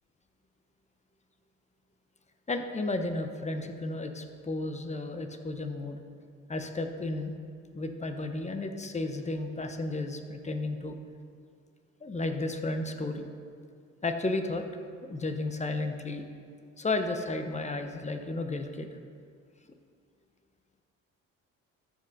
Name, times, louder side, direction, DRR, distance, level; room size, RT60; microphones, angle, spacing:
voice 1, 2.5-6.0 6.5-7.3 7.7-11.0 12.0-13.2 14.0-14.6 15.1-16.2 16.8-18.9, left 2 dB, 20° left, 6 dB, 0.9 m, -33 dB
12.5 x 7.6 x 2.7 m, 2.2 s
hypercardioid pair, 50°, 39 cm